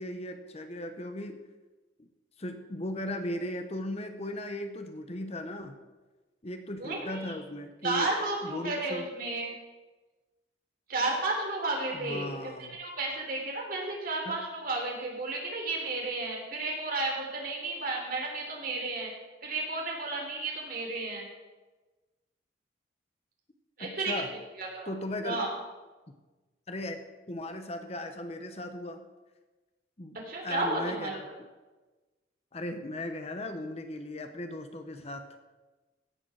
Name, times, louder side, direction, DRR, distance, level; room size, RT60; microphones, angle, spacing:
voice 1, 0.0-1.4 2.0-2.1 2.4-5.8 6.4-8.1 8.4-9.1 11.9-12.8 14.3-14.4 23.8-24.3 24.9-25.5 26.7-27.0 27.3-29.0 30.0-31.2 32.5-35.3, left 1 dB, 35° left, 7 dB, 0.8 m, -37 dB
voice 2, 6.8-7.3 7.8-9.5 10.9-12.5 12.8-19.1 19.4-21.3 23.8-24.2 24.6-24.9 25.2-25.5 30.2-31.2, right 2 dB, 50° right, -1 dB, 3.4 m, -32 dB
17.0 x 6.8 x 6.3 m, 1.2 s
head